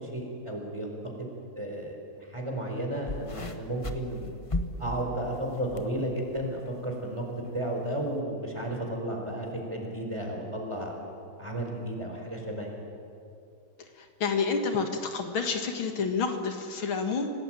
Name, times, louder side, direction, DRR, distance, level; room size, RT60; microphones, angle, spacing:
voice 1, 0.0-4.4 4.8-10.9 11.4-12.7, right 1 dB, 15° right, 1 dB, 4.4 m, -33 dB
sound 1, 3.1-5.9 6.3-6.7 7.5-7.6, left 1 dB, 20° left, 1.0 m, -35 dB
voice 2, 14.0-17.3, left 5 dB, 75° left, 5 dB, 2.5 m, -29 dB
26.5 x 18.5 x 9.0 m, 2.6 s
omnidirectional pair, 2.3 m